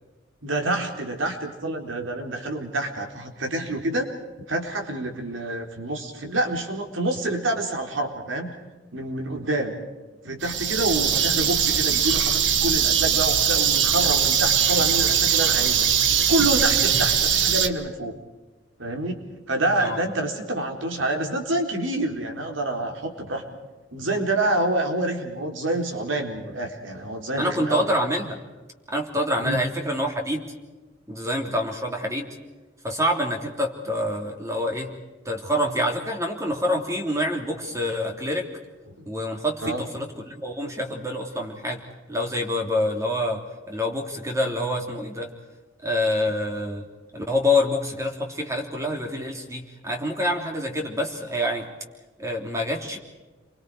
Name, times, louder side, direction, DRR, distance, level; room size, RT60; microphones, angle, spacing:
voice 1, 0.4-4.1 4.5-8.5 8.9-9.8 10.2-15.9 16.3-18.2 18.8-23.4 23.9-27.9 29.4-29.6 39.6-39.8, right 1 dB, 90° right, 2 dB, 4.0 m, -27 dB
sound 1, 10.4-17.7, right 8 dB, 70° right, 1.4 m, -21 dB
voice 2, 27.4-28.4 28.9-30.5 31.1-32.3 32.8-34.9 35.2-38.5 39.0-41.8 42.1-45.3 45.8-46.9 47.1-51.7 52.2-53.0, left 1 dB, 15° right, 2 dB, 3.2 m, -26 dB
29.5 x 24.0 x 4.9 m, 1.2 s
head